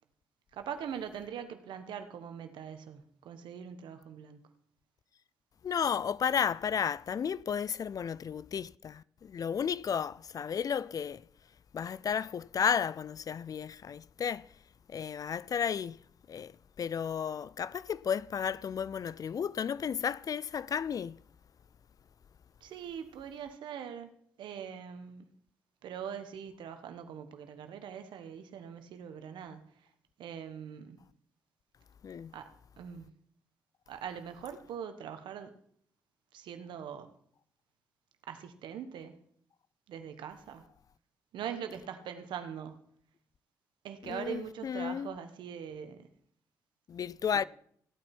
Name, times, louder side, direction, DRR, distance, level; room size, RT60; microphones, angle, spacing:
voice 1, 0.5-4.4 22.6-24.1 24.4-25.3 25.8-29.7 30.2-31.0 32.3-32.5 32.8-33.1 33.9-35.5 36.3-37.1 38.3-39.2 39.9-40.6 41.3-42.9 43.8-46.1, right 8 dB, 75° right, 1.2 m, -42 dB
voice 2, 5.6-11.2 11.7-14.5 14.9-16.0 16.3-21.2 32.0-32.4 44.0-45.2 46.9-47.4, left 7 dB, 50° left, 0.4 m, -33 dB
15.0 x 8.8 x 4.5 m
supercardioid pair, 50°, 8 cm